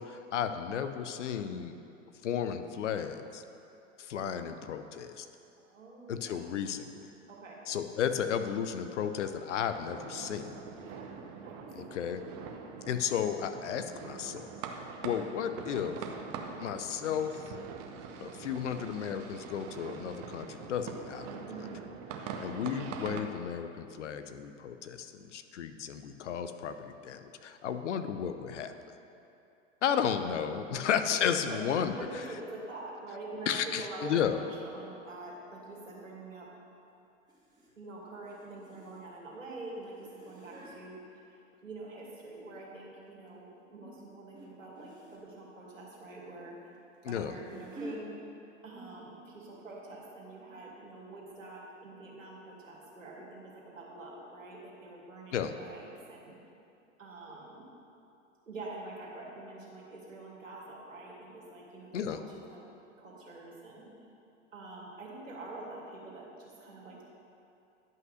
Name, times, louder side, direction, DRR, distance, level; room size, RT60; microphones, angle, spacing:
voice 1, 0.0-1.7 2.2-3.4 4.0-5.3 6.1-7.1 7.7-10.6 11.8-12.2 12.9-14.5 15.0-16.0 16.6-17.4 18.2-21.4 22.4-28.7 29.8-31.9 33.5-34.4 47.0-47.3 55.3-55.5 61.9-62.2, left 8 dB, 65° left, 9 dB, 0.8 m, -33 dB
voice 2, 5.6-6.4 7.3-7.6 10.7-11.1 11.4-12.2 12.4-12.7 21.5-21.9 30.7-31.0 31.5-31.6 31.9-36.5 37.8-41.0 41.6-46.6 47.1-48.1 48.6-56.4 57.0-57.7 58.5-62.6 63.0-63.9 64.5-67.0, right 2 dB, 80° right, -4 dB, 2.3 m, -46 dB
sound 1, 9.7-23.2, right 6 dB, 40° right, 1.0 m, -43 dB
sound 2, 34.1-34.3 37.3-37.7 38.0-39.2 39.8-40.8 41.8-42.6 43.0-43.3 44.3-44.5 44.7-45.3 46.7-48.0 48.9-49.1 49.3-49.4 50.0-50.1, right 1 dB, 10° right, 2.0 m, -50 dB
11.0 x 5.8 x 6.5 m, 2.7 s
figure-of-eight pair, 90°, 38 cm